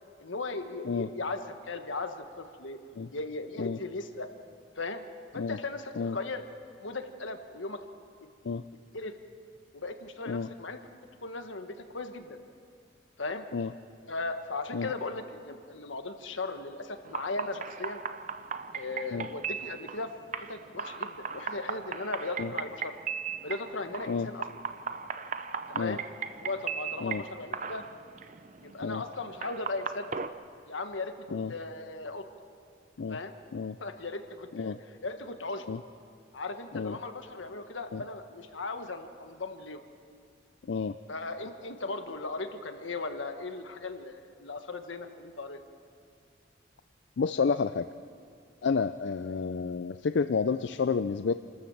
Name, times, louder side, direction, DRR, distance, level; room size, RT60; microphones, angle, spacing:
voice 1, 0.2-2.8 3.1-4.3 4.8-5.0 5.3-6.4 6.8-7.8 8.9-9.2 9.7-10.8 11.2-12.4 13.2-13.4 14.1-18.0 18.7-22.9 23.4-24.4 25.5-26.0 26.3-27.8 28.6-30.1 30.7-32.2 33.1-33.3 33.8-34.8 35.0-35.6 36.3-39.8 41.1-45.6, left 3 dB, 90° left, 7 dB, 1.4 m, -37 dB
sound 1, 17.0-30.3, right 6 dB, 40° right, 0.6 m, -38 dB
voice 2, 47.2-47.9 48.6-51.3, left 5 dB, 70° left, 11 dB, 0.4 m, -30 dB
28.0 x 13.0 x 7.3 m, 2.3 s
head